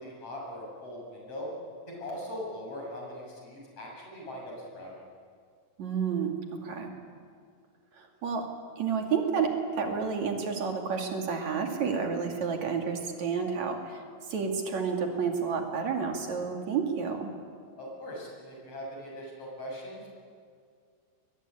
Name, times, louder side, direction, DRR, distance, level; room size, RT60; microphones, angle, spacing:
voice 1, 0.0-1.5 1.9-4.9 17.8-20.1, left 1 dB, 55° left, -2 dB, 8.4 m, -40 dB
voice 2, 5.8-6.9 7.9-8.5 8.8-14.0 14.3-17.3, right 6 dB, 70° right, 3 dB, 3.9 m, -30 dB
22.5 x 22.5 x 9.8 m, 2.2 s
omnidirectional pair, 3.4 m